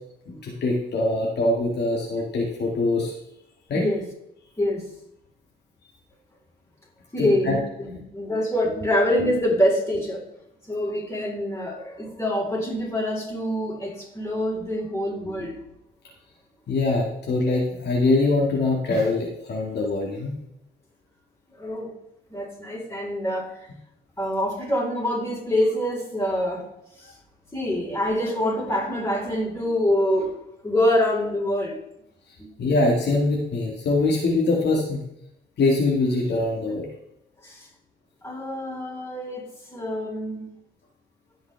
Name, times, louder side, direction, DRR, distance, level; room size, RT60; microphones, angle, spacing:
voice 1, 0.3-3.1 3.7-3.8 7.2-7.6 16.7-20.3 32.6-35.1 35.6-36.9, left 2 dB, 60° left, -2 dB, 2.0 m, -23 dB
voice 2, 7.1-10.2 10.7-15.6 21.6-21.9 22.3-23.6 24.2-26.6 27.0-27.1 27.5-30.3 30.6-31.8 32.4-32.5 37.4-37.7 38.2-40.6, left 1 dB, 15° left, -3 dB, 4.3 m, -25 dB
16.5 x 5.6 x 3.5 m, 0.79 s
cardioid pair, 90°, 20 cm